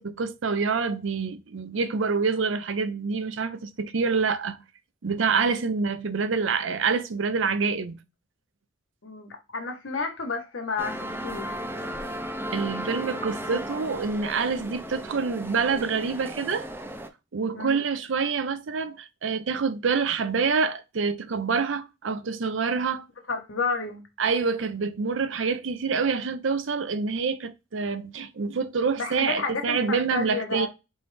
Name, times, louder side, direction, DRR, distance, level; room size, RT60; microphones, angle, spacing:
voice 1, 0.0-4.6 5.0-8.0 12.5-16.7 17.3-23.0 24.2-30.7, right 5 dB, 75° right, 0.6 m, -26 dB
voice 2, 9.0-11.7 17.5-17.8 23.3-24.0 28.9-30.7, left 4 dB, 85° left, 1.2 m, -31 dB
sound 1, 10.8-17.1, equal, 10° right, 0.5 m, -35 dB
4.3 x 3.2 x 3.3 m
head